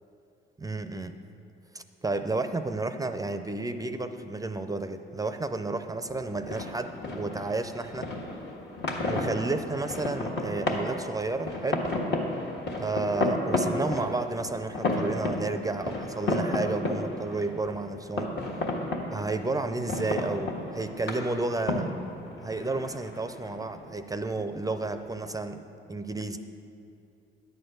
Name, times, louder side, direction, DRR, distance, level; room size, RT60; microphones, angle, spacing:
voice 1, 0.6-1.2 1.7-8.1 9.0-11.9 12.8-18.4 19.1-21.9 22.4-25.6 25.9-26.4, right 3 dB, 20° right, 9 dB, 0.4 m, -31 dB
sound 1, 6.1-25.3, left 2 dB, 60° left, 1.5 m, -33 dB
11.0 x 4.4 x 7.9 m, 2.6 s
cardioid pair, 90°, 20 cm